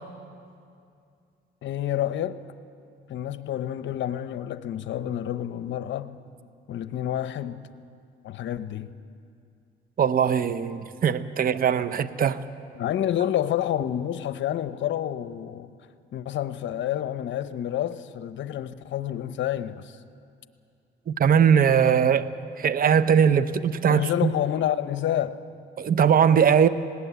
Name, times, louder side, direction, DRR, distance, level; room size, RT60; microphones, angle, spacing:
voice 1, 1.6-2.4 3.1-6.2 6.7-7.7 8.2-8.9 12.7-15.7 16.1-20.0 22.0-22.1 23.8-25.4, left 11 dB, 70° left, 0.8 m, -29 dB
voice 2, 10.0-12.4 21.1-22.2 22.6-24.3 25.8-26.7, right 7 dB, 45° right, 0.8 m, -20 dB
20.0 x 18.0 x 8.3 m
cardioid pair, 90°, 20 cm